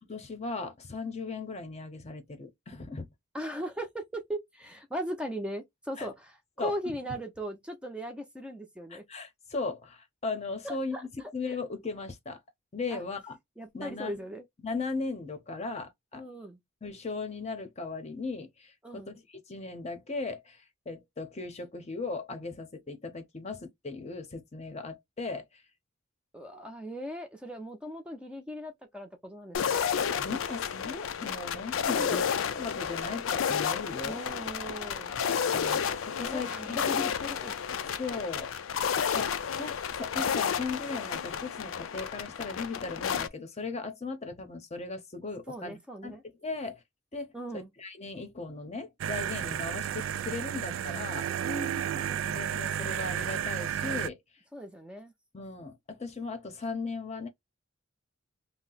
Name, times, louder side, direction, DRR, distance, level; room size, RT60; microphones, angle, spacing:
voice 1, 0.1-3.1 6.0-6.1 6.6-6.7 8.9-12.4 12.7-13.4 13.7-14.2 14.6-16.2 16.8-25.6 30.1-32.3 32.5-34.2 35.5-36.8 38.0-38.5 39.1-45.8 46.0-46.2 46.4-46.8 47.1-51.3 52.2-54.2 55.3-57.3, left 3 dB, 35° left, 0.7 m, -37 dB
voice 2, 3.3-9.0 10.6-11.6 12.9-13.0 13.6-14.4 16.1-16.6 18.8-19.1 26.3-29.9 31.9-32.3 34.0-35.2 36.2-38.0 45.5-46.2 47.3-47.7 51.4-52.3 54.5-55.1, equal, 5° right, 0.6 m, -39 dB
sound 1, 29.5-43.3, left 7 dB, 80° left, 0.4 m, -31 dB
sound 2, 49.0-54.1, right 9 dB, 75° right, 0.3 m, -32 dB
2.8 x 2.1 x 3.9 m
head